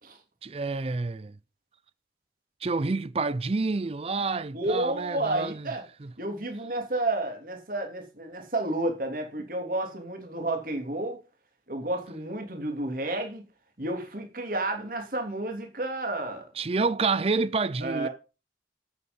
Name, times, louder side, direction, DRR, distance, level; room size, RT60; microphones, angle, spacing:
voice 1, 0.4-1.3 2.6-5.7 6.0-6.1 16.6-18.1, right 3 dB, 35° right, 0.5 m, -28 dB
voice 2, 4.5-5.8 6.2-11.2 11.7-13.4 13.8-16.4 17.8-18.1, right 2 dB, 50° right, 3.1 m, -31 dB
9.5 x 8.6 x 5.4 m
head